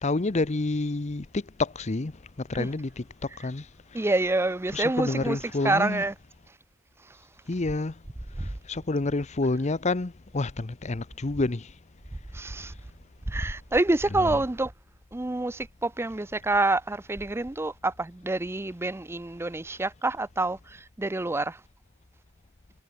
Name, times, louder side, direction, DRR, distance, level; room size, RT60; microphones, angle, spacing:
voice 1, 0.0-2.1 2.5-3.0 3.4-3.6 4.7-6.0 7.5-7.9 8.7-11.7 14.2-14.4, left 2 dB, 35° left, 0.7 m, -28 dB
voice 2, 3.9-5.4 5.6-6.1 8.4-8.5 12.3-12.7 13.3-14.7 15.1-21.6, right 2 dB, 10° right, 0.5 m, -27 dB
head